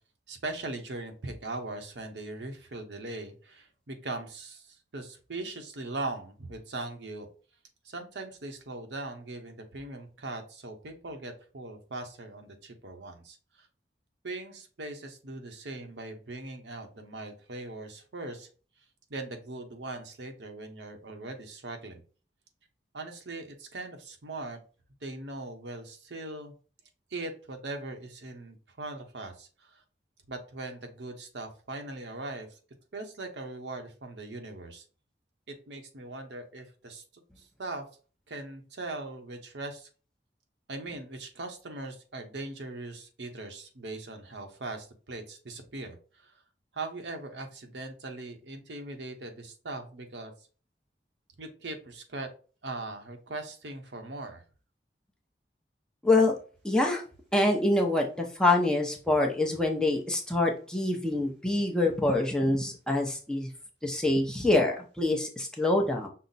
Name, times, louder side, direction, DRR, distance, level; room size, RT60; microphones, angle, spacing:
voice 1, 0.3-7.3 7.8-13.7 14.2-18.5 19.1-22.0 22.9-24.6 25.0-26.5 27.1-29.8 30.3-32.6 32.9-34.8 35.5-37.0 37.4-37.9 38.3-39.9 40.7-46.3 46.7-50.3 51.4-52.3 52.6-54.4, right 2 dB, 85° right, 5 dB, 0.8 m, -40 dB
voice 2, 56.0-56.3 56.6-57.0 57.3-63.5 63.8-66.1, left 2 dB, 5° left, 0 dB, 0.6 m, -25 dB
5.6 x 2.0 x 4.0 m, 0.38 s
head